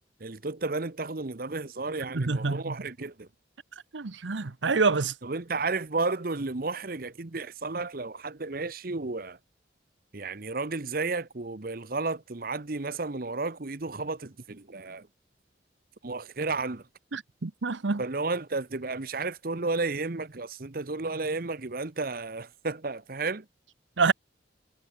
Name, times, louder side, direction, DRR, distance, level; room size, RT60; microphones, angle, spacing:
voice 1, 0.2-3.3 5.2-9.4 10.1-15.0 16.0-16.8 18.0-23.4, right 3 dB, 50° right, 1.0 m, -32 dB
voice 2, 2.1-2.8 3.9-5.1 17.1-18.0 24.0-24.1, right 4 dB, 85° right, 0.9 m, -27 dB
head